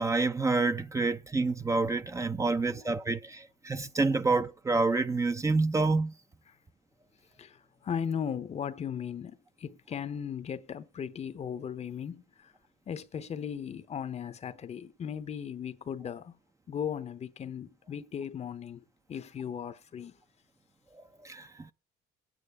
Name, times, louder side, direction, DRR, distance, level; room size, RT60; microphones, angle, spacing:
voice 1, 0.0-6.1 21.2-21.5, right 3 dB, 20° right, 0.6 m, -28 dB
voice 2, 2.5-2.9 7.4-12.5 12.9-16.4 16.7-20.2, left 8 dB, 40° left, 0.8 m, -37 dB
20.5 x 8.9 x 3.5 m
cardioid pair, 110°, 17 cm